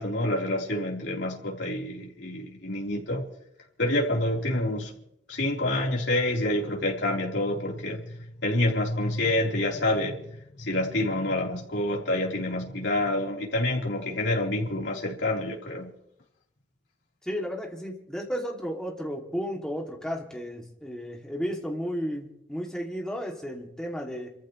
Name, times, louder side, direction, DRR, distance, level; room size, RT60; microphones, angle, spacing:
voice 1, 0.0-3.2 3.8-4.9 5.3-15.9, left 1 dB, 70° left, 3.9 m, -28 dB
voice 2, 17.3-24.3, equal, 5° left, 2.6 m, -33 dB
28.5 x 14.5 x 3.2 m
head